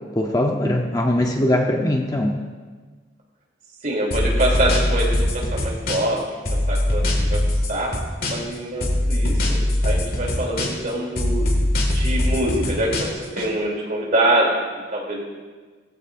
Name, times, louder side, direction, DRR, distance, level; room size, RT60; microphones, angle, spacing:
voice 1, 0.1-2.4, left 1 dB, 20° left, 2 dB, 0.8 m, -21 dB
voice 2, 3.8-6.2 6.5-7.4 7.7-7.9 8.3-9.6 9.8-11.6 11.9-14.5 14.9-15.2, right 1 dB, 45° right, -2 dB, 3.0 m, -24 dB
sound 1, 4.1-6.2 6.5-8.5 8.8-10.9 11.2-13.5, left 1 dB, 50° left, 2.0 m, -21 dB
16.5 x 15.0 x 2.6 m, 1.4 s
head